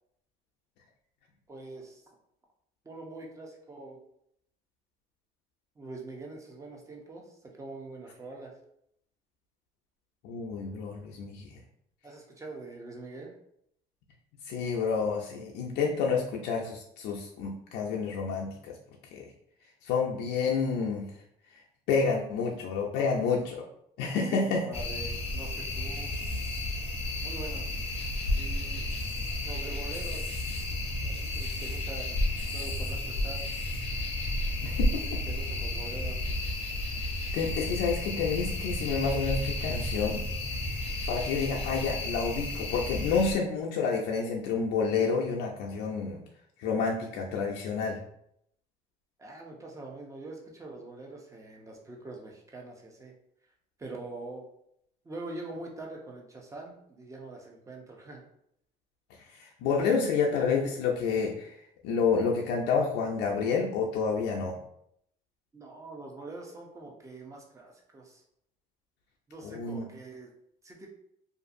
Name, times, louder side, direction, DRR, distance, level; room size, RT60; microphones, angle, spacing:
voice 1, 1.5-2.0 2.8-4.0 5.8-8.5 12.0-13.3 24.3-26.1 27.2-27.7 28.3-28.9 29.4-30.3 31.0-32.2 32.5-33.4 35.2-36.2 49.2-53.1 53.8-54.5 55.0-58.2 65.5-68.2 69.3-70.3 70.6-70.9, right 2 dB, 20° right, 0 dB, 0.6 m, -44 dB
voice 2, 10.2-11.5 14.5-18.7 19.1-19.2 19.8-21.1 21.9-23.6 24.0-24.6 34.6-35.0 37.3-40.2 41.1-46.2 46.6-48.0 59.4-61.5 61.8-64.5 69.4-69.8, left 5 dB, 90° left, -1 dB, 0.4 m, -29 dB
sound 1, 24.7-43.3, left 1 dB, 35° left, 0.6 m, -32 dB
2.5 x 2.5 x 2.5 m, 0.73 s
cardioid pair, 110°, 17 cm